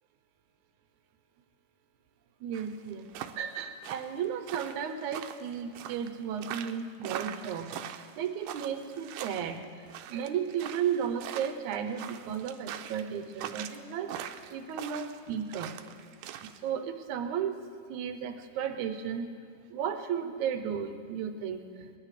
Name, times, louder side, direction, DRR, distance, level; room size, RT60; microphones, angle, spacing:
voice 1, 2.4-3.1 3.4-9.6 10.1-14.1 14.5-15.8 16.6-17.6 17.9-19.3 19.7-22.0, right 8 dB, 75° right, 7 dB, 1.9 m, -34 dB
sound 1, 2.5-16.6, right 11 dB, 90° right, 2.5 m, -42 dB
21.5 x 19.5 x 3.3 m, 2.1 s
omnidirectional pair, 4.3 m